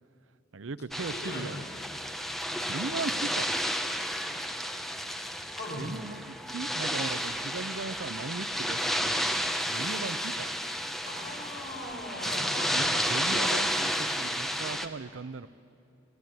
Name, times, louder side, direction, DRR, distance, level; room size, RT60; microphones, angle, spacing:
voice 1, 0.5-1.6 2.7-3.5 5.8-10.5 12.7-15.5, right 4 dB, 85° right, 15 dB, 0.7 m, -38 dB
sound 1, 0.9-14.9, equal, ahead, 1.1 m, -31 dB
voice 2, 1.1-1.8 5.5-6.0 11.0-13.1, left 1 dB, 55° left, 0 dB, 5.7 m, -39 dB
29.5 x 19.5 x 9.6 m, 2.8 s
head